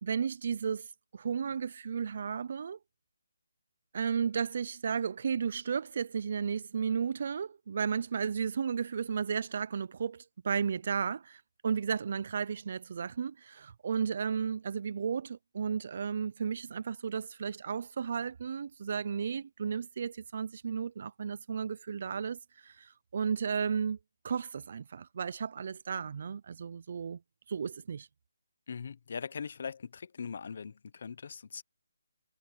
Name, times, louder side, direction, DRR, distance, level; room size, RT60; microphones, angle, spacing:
voice 1, 0.0-0.9 1.1-2.8 3.9-24.0 24.2-27.2 27.5-28.1, right 6 dB, 40° right, 0.3 m, -34 dB
voice 2, 28.7-31.6, left 6 dB, 45° left, 0.9 m, -40 dB
hypercardioid pair, 170°, 0 cm